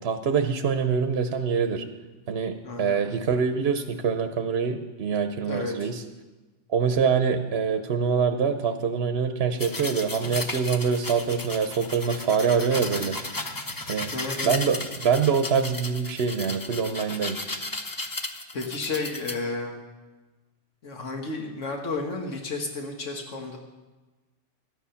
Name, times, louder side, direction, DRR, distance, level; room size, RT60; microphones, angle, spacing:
voice 1, 0.0-1.8 2.3-6.0 6.7-13.2 13.9-14.1 14.4-17.4, right 6 dB, 60° right, 7 dB, 0.9 m, -25 dB
voice 2, 2.6-3.0 5.5-5.9 14.1-14.6 18.5-19.8 20.8-23.6, left 3 dB, 80° left, 2 dB, 1.6 m, -32 dB
sound 1, 9.6-19.3, left 2 dB, 20° left, 0.6 m, -35 dB
13.5 x 9.6 x 5.7 m, 1.2 s
omnidirectional pair, 1.3 m